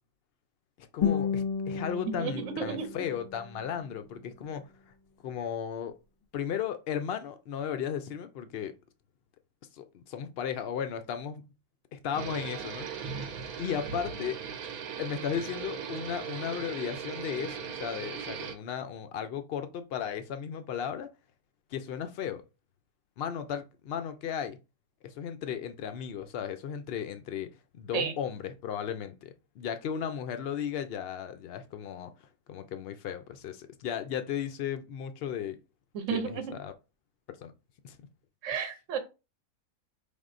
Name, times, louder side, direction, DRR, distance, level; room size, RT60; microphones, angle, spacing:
voice 1, 0.8-4.6 5.2-5.9 6.3-8.7 9.7-11.4 11.9-13.2 13.6-14.4 15.0-21.1 21.7-22.4 23.2-24.6 25.0-27.5 27.8-32.1 32.5-35.6 36.1-36.7 37.4-37.5 37.8-38.0, left 8 dB, 85° left, 0.5 m, -35 dB
Guitar, 1.0-4.0, left 7 dB, 35° left, 0.6 m, -33 dB
voice 2, 2.2-3.1 27.9-28.1 35.9-36.5 38.4-39.0, right 6 dB, 60° right, 1.1 m, -32 dB
sound 1, 12.1-18.6, right 7 dB, 80° right, 1.2 m, -38 dB
5.4 x 3.4 x 2.5 m
omnidirectional pair, 1.6 m